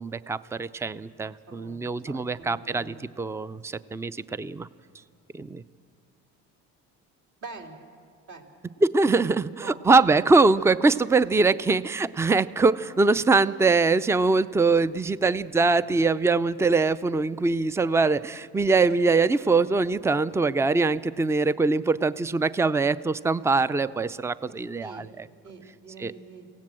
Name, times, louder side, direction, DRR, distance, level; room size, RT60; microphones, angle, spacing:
voice 1, 0.0-4.7 5.3-5.6 8.8-25.3 26.0-26.1, right 3 dB, 10° right, 17 dB, 0.5 m, -23 dB
voice 2, 0.7-3.1 7.4-7.8 8.3-8.5 9.6-9.8 24.5-25.1 25.4-26.5, right 3 dB, 55° right, 1 dB, 3.6 m, -45 dB
25.5 x 17.0 x 7.5 m, 2.3 s
supercardioid pair, 80°, 34 cm